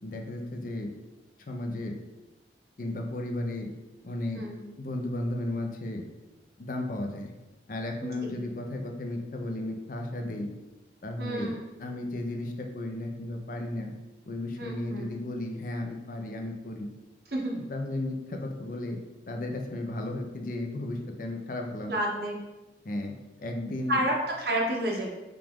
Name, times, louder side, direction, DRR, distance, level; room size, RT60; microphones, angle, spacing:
voice 1, 0.0-0.9 1.5-2.0 2.8-3.7 4.0-4.4 4.8-6.0 6.6-7.3 7.7-10.5 11.0-11.5 11.8-13.9 14.3-16.9 17.5-19.0 19.3-21.9 22.8-23.1 23.4-24.0, left 1 dB, 50° left, 2 dB, 0.5 m, -34 dB
voice 2, 4.3-4.7 8.0-8.4 11.2-11.6 14.6-15.1 17.3-17.6 21.9-22.4 23.9-25.1, right 1 dB, 60° right, -1 dB, 0.9 m, -30 dB
4.9 x 2.4 x 3.6 m, 1.1 s
head